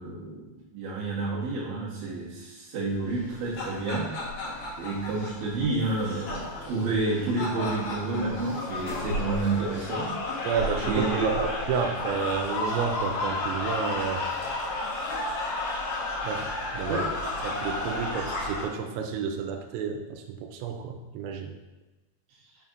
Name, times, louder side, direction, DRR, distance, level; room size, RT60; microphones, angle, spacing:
voice 1, 0.0-4.1 4.8-10.2 10.8-11.3 16.9-17.1, right 3 dB, 55° right, -8 dB, 2.5 m, -29 dB
sound 1, 3.2-18.6, left 2 dB, 80° left, 1.8 m, -32 dB
voice 2, 10.4-14.2 16.2-16.4 16.7-17.1 17.4-21.5, right 6 dB, 90° right, 4 dB, 3.3 m, -31 dB
6.8 x 5.6 x 2.5 m, 1.1 s
omnidirectional pair, 5.9 m